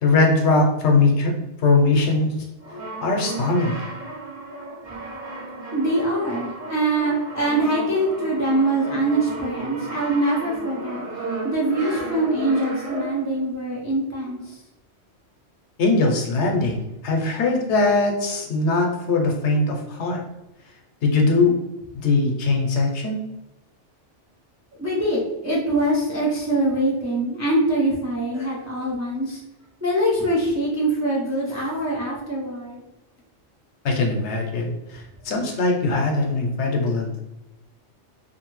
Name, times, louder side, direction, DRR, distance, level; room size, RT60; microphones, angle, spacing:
voice 1, 0.0-1.3 1.6-2.3 3.0-3.9 15.8-20.2 21.0-21.6 21.9-23.2 33.8-37.2, left 3 dB, 70° left, 1 dB, 0.9 m, -21 dB
Brass instrument, 2.6-13.4, right 2 dB, 55° right, 0.7 m, -34 dB
voice 2, 5.7-11.0 11.4-14.5 24.8-29.4 29.8-32.8, right 1 dB, 25° right, -4 dB, 0.3 m, -23 dB
2.6 x 2.6 x 3.0 m, 0.95 s
omnidirectional pair, 1.2 m